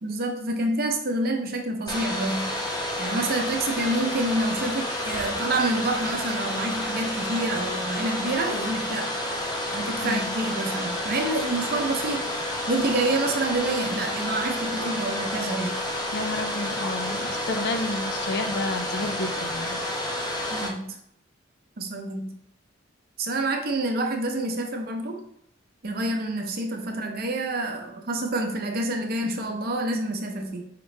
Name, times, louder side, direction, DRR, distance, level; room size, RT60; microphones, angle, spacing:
voice 1, 0.0-2.5 3.0-9.1 9.7-12.3 12.7-15.8 20.5-21.0 21.8-22.4 23.2-25.2 25.8-30.6, right 2 dB, 50° right, 3 dB, 0.7 m, -28 dB
Domestic sounds home sounds, 1.9-20.7, left 1 dB, 20° left, 0.7 m, -30 dB
voice 2, 10.0-10.4 16.1-19.8, left 2 dB, 60° left, 7 dB, 0.5 m, -30 dB
5.0 x 3.0 x 3.2 m, 0.72 s
head